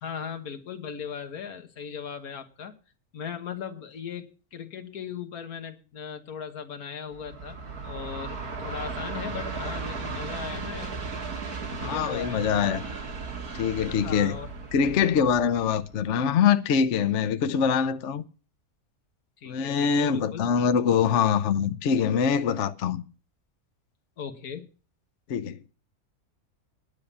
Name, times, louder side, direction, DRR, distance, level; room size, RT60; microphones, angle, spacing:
voice 1, 0.0-2.7 3.1-7.6 7.8-11.0 11.8-12.4 13.9-14.5 14.8-15.2 19.4-20.4 24.2-24.7, left 7 dB, 90° left, 1.8 m, -38 dB
Train, 7.1-16.3, right 4 dB, 90° right, 2.3 m, -36 dB
voice 2, 11.8-12.8 13.5-14.3 14.7-18.2 19.5-23.0 25.3-25.7, left 7 dB, 60° left, 1.0 m, -24 dB
10.5 x 6.9 x 8.6 m
omnidirectional pair, 1.5 m